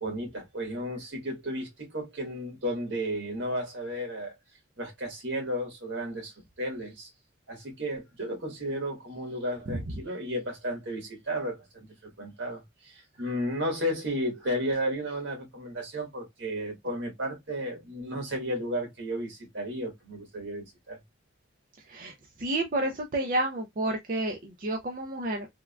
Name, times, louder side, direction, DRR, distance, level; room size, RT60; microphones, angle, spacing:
voice 1, 0.0-4.3 4.8-6.3 6.6-7.1 7.5-21.0, equal, 80° right, 1.6 m, -33 dB
voice 2, 21.9-25.5, right 1 dB, 45° right, 0.4 m, -30 dB
3.5 x 2.2 x 2.3 m
head